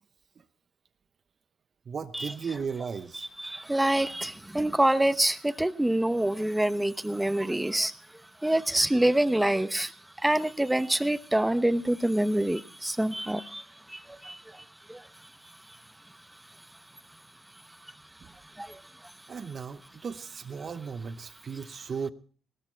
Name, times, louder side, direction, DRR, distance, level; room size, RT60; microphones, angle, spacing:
voice 1, 1.9-3.3 18.2-18.3 19.3-22.1, right 6 dB, 45° right, 9 dB, 0.9 m, -36 dB
voice 2, 3.4-7.9 8.4-15.1 18.6-18.8, right 1 dB, 10° right, 13 dB, 0.9 m, -26 dB
17.5 x 13.5 x 4.5 m, 0.41 s
cardioid pair, 90°, 0 cm